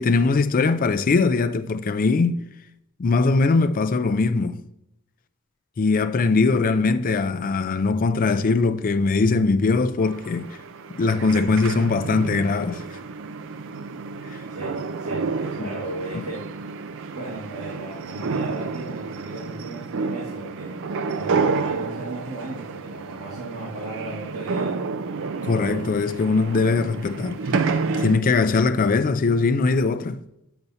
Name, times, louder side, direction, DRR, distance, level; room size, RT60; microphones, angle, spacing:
voice 1, 0.0-2.4 3.0-4.6 5.8-10.6 10.9-12.8 14.3-14.4 15.6-15.7 16.1-16.2 25.4-30.2, left 4 dB, 40° left, 0.4 m, -21 dB
sound 1, 10.0-28.2, right 4 dB, 60° right, 0.4 m, -30 dB
voice 2, 14.5-16.4 17.1-24.8, right 2 dB, 85° right, 1.7 m, -36 dB
8.1 x 6.9 x 2.7 m
head